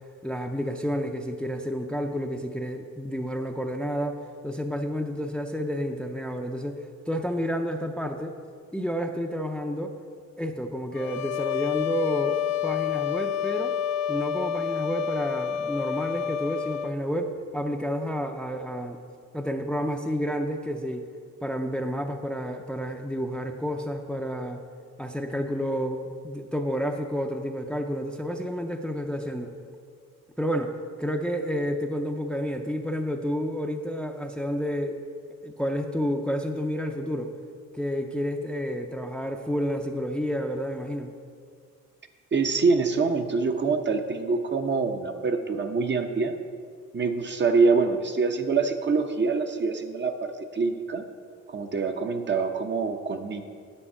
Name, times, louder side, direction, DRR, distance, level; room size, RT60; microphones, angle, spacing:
voice 1, 0.2-4.2 4.4-6.8 7.1-8.4 8.7-9.9 10.4-13.8 14.1-19.0 19.3-21.0 21.4-24.6 25.0-29.5 30.4-30.7 31.0-35.0 35.4-37.3 37.7-41.1, equal, 5° left, 4 dB, 0.6 m, -30 dB
sound 1, 11.0-17.0, left 9 dB, 60° left, 0.5 m, -29 dB
voice 2, 42.3-46.3 46.9-51.0 51.5-53.4, right 4 dB, 40° right, 6 dB, 0.8 m, -25 dB
9.9 x 6.9 x 5.6 m, 2.1 s
cardioid pair, 90°, 30 cm